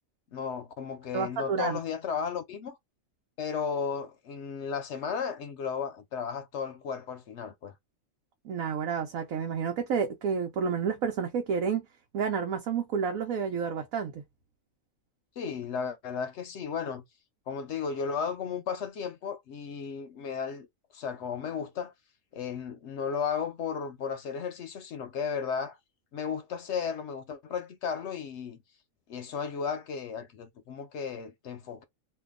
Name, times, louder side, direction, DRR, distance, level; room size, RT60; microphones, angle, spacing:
voice 1, 0.3-2.8 3.4-7.7 15.4-17.0 17.5-20.7 20.9-21.9 22.3-25.8 26.1-28.6 29.1-31.8, left 6 dB, 65° left, 0.8 m, -34 dB
voice 2, 1.1-1.8 8.4-11.9 12.1-14.2, right 6 dB, 85° right, 1.2 m, -30 dB
2.7 x 2.3 x 3.5 m
omnidirectional pair, 1.4 m